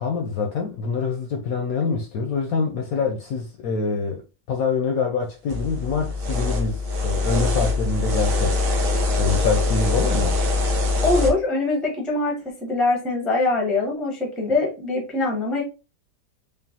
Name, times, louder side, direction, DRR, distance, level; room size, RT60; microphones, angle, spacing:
voice 1, 0.0-4.2 4.5-8.6 9.2-10.4, left 5 dB, 70° left, 0.9 m, -25 dB
sound 1, 5.5-11.3, left 3 dB, 70° right, 1.6 m, -23 dB
voice 2, 11.0-15.6, left 2 dB, ahead, 0.5 m, -23 dB
5.2 x 2.4 x 2.8 m
omnidirectional pair, 1.9 m